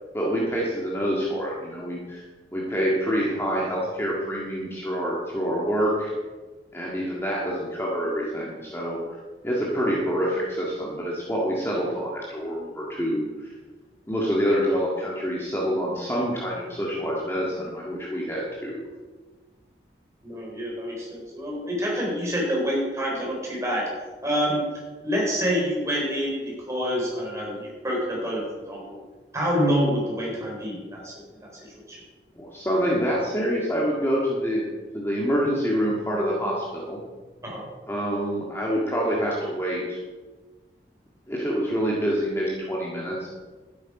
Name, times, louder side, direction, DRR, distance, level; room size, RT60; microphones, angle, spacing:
voice 1, 0.1-2.2 2.5-6.1 6.7-9.0 9.4-13.5 14.1-18.8 32.3-34.6 34.9-37.0 37.9-40.0 41.3-43.3, equal, 15° left, -4 dB, 1.8 m, -26 dB
voice 2, 20.2-23.8 24.2-24.6 25.0-29.0 29.3-31.1 31.4-32.0 37.4-37.6, equal, 15° right, -3 dB, 4.0 m, -27 dB
12.5 x 10.5 x 4.9 m, 1.3 s
head